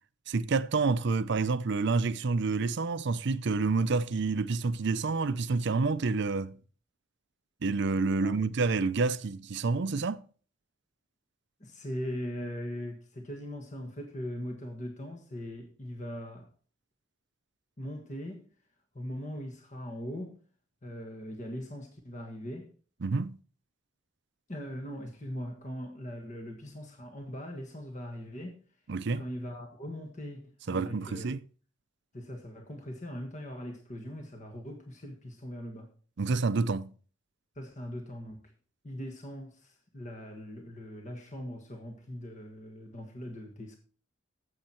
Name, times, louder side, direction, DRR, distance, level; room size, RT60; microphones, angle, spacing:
voice 1, 0.3-6.6 7.6-10.2 23.0-23.4 28.9-29.2 30.7-31.4 36.2-36.9, right 4 dB, 60° right, 0.6 m, -28 dB
voice 2, 11.6-16.5 17.8-18.5 18.9-20.4 20.8-22.7 24.5-28.6 29.1-31.3 32.1-35.9 37.5-38.4 38.8-43.8, equal, 35° left, 1.6 m, -40 dB
12.0 x 7.8 x 4.4 m
head